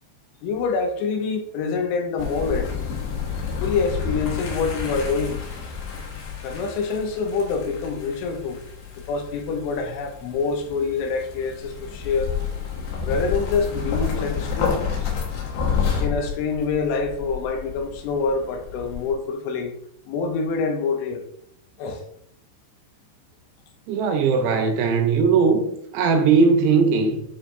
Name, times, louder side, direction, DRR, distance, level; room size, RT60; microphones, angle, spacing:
voice 1, 0.4-2.7 3.6-5.4 6.4-8.6 9.1-12.3 13.0-14.9 16.0-19.7 20.1-21.3 21.8-22.0, left 4 dB, 80° left, 3.1 m, -26 dB
sound 1, 2.2-19.1, left 6 dB, 65° left, 2.8 m, -30 dB
voice 2, 23.9-25.7 25.9-27.2, right 5 dB, 80° right, 2.6 m, -19 dB
10.0 x 4.3 x 2.6 m
omnidirectional pair, 5.4 m